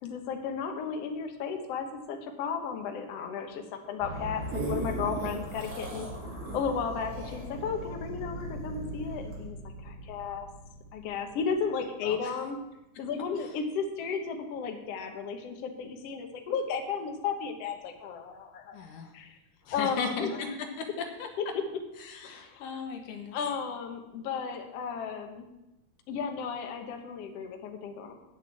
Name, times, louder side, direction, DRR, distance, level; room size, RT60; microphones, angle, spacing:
voice 1, 0.0-6.1 6.4-9.6 9.8-10.5 10.9-12.6 13.0-18.8 19.1-19.4 19.7-20.3 22.2-22.6 23.3-25.5 26.1-28.1, left 6 dB, 60° left, 4 dB, 2.0 m, -34 dB
sound 1, 4.0-12.0, equal, 10° left, 2.6 m, -40 dB
sound 2, 4.1-8.8 9.3-9.4, right 3 dB, 70° right, 3.6 m, -39 dB
voice 2, 18.7-19.1 19.6-20.5 20.8-21.3 22.0-23.4, left 5 dB, 85° left, 4 dB, 2.8 m, -37 dB
9.8 x 6.6 x 8.4 m, 0.95 s
omnidirectional pair, 3.6 m